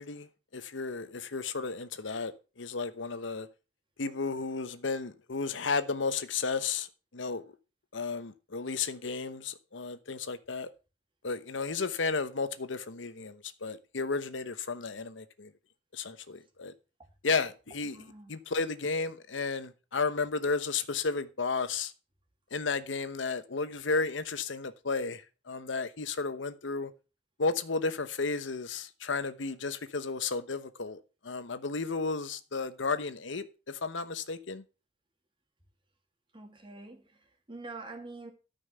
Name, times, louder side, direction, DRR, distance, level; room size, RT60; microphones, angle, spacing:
voice 1, 0.0-3.5 4.0-6.9 7.1-7.4 7.9-10.7 11.2-15.5 15.9-16.7 17.2-18.0 18.3-21.9 22.5-26.9 27.4-34.6, left 4 dB, 75° left, 1.0 m, -33 dB
voice 2, 17.9-18.3 36.3-38.3, right 3 dB, 25° right, 2.6 m, -46 dB
13.0 x 5.6 x 6.7 m
head